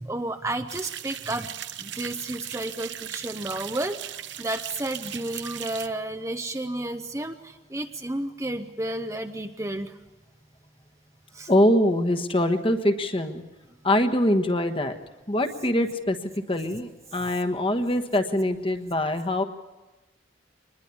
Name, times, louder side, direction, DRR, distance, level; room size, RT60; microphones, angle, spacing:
voice 1, 0.0-1.5 1.8-4.0 4.4-9.9 11.3-11.5, right 1 dB, 15° right, 7 dB, 0.7 m, -31 dB
sound 1, 0.7-5.9, right 11 dB, 70° right, 0.9 m, -38 dB
voice 2, 11.5-13.4 13.8-15.0 15.3-16.2 16.5-19.4, left 1 dB, 30° left, 6 dB, 1.3 m, -23 dB
24.5 x 20.5 x 7.1 m, 1.1 s
head